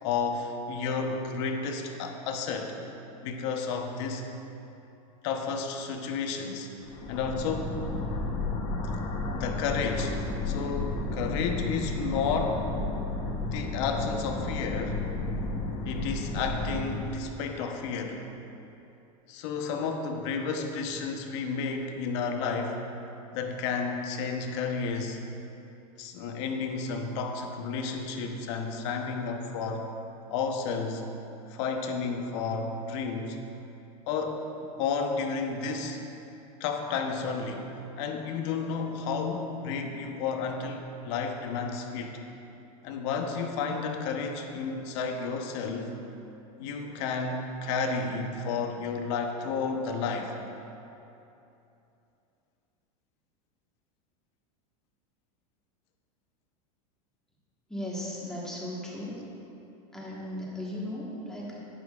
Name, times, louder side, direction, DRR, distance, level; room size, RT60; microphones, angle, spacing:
voice 1, 0.0-2.8 3.2-4.2 5.2-6.7 7.1-7.9 9.3-10.2 10.5-12.7 13.5-15.0 15.8-18.2 19.3-22.8 23.3-25.2 26.0-29.9 30.3-31.0 31.5-33.4 34.1-34.5 34.8-36.0 36.6-42.2 42.8-45.9 46.6-50.4, left 5 dB, 55° left, 4 dB, 0.9 m, -31 dB
sound 1, 6.8-17.0, left 2 dB, 30° left, 0.9 m, -32 dB
voice 2, 57.7-59.2 59.9-61.6, left 1 dB, 5° left, -6 dB, 1.4 m, -36 dB
11.0 x 10.0 x 2.4 m, 2.9 s
supercardioid pair, 155°, 18 cm